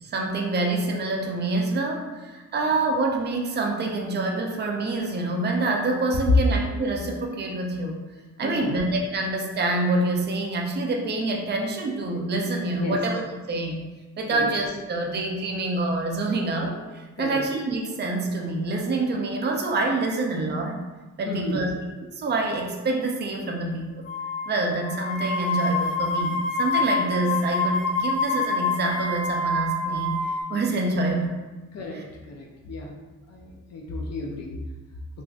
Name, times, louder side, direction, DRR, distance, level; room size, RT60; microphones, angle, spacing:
voice 1, 0.0-8.0 8.4-13.2 13.5-13.8 14.2-20.8 21.2-21.7 22.0-23.9 24.5-30.2 30.5-31.4 31.9-32.0, right 2 dB, 35° right, 1 dB, 0.4 m, -26 dB
voice 2, 8.4-8.8 12.7-13.0 14.3-14.5 17.2-17.4 21.2-21.6 31.7-32.0 32.3-33.0 33.3-34.5, left 2 dB, 55° left, -1 dB, 0.5 m, -34 dB
sound 1, 24.1-24.5 24.8-30.4, left 3 dB, 90° left, 1.4 m, -26 dB
3.5 x 2.5 x 2.3 m, 1.2 s
wide cardioid pair, 145°, 31 cm